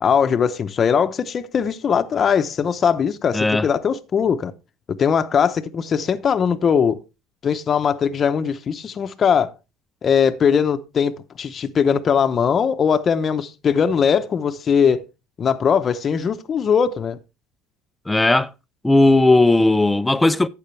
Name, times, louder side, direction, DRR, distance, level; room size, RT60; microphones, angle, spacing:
voice 1, 0.0-4.5 5.0-7.0 7.4-9.5 10.0-15.0 15.4-17.2, left 7 dB, 35° left, 0.8 m, -20 dB
voice 2, 3.3-3.7 18.1-18.5 18.8-20.5, left 2 dB, 10° left, 0.5 m, -16 dB
12.0 x 8.4 x 3.2 m
cardioid pair, 125°, 0 cm